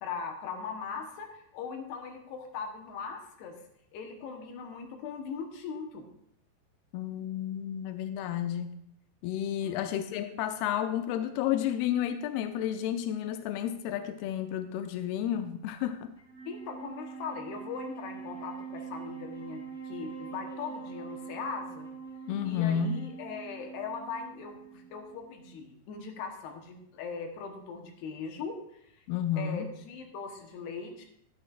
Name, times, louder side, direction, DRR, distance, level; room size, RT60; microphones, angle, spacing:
voice 1, 0.0-3.6 3.9-6.1 9.6-9.8 16.5-21.9 22.4-29.0 29.4-31.0, left 5 dB, 70° left, 3 dB, 2.9 m, -40 dB
voice 2, 6.9-8.8 9.2-16.1 22.3-23.0 29.1-29.7, left 9 dB, 90° left, 9 dB, 2.2 m, -31 dB
Wind instrument woodwind instrument, 16.2-25.7, right 6 dB, 30° left, 2.0 m, -44 dB
12.0 x 12.0 x 2.5 m, 0.72 s
omnidirectional pair, 5.2 m